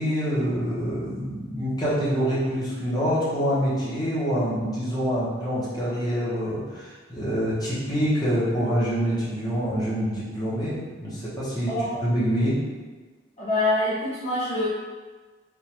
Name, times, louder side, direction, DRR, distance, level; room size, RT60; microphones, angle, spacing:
voice 1, 0.0-11.8 12.0-12.6, equal, 20° left, -9 dB, 1.1 m, -26 dB
voice 2, 11.7-12.0 13.4-14.7, left 1 dB, 35° left, -11 dB, 0.7 m, -25 dB
3.6 x 2.5 x 2.9 m, 1.4 s
head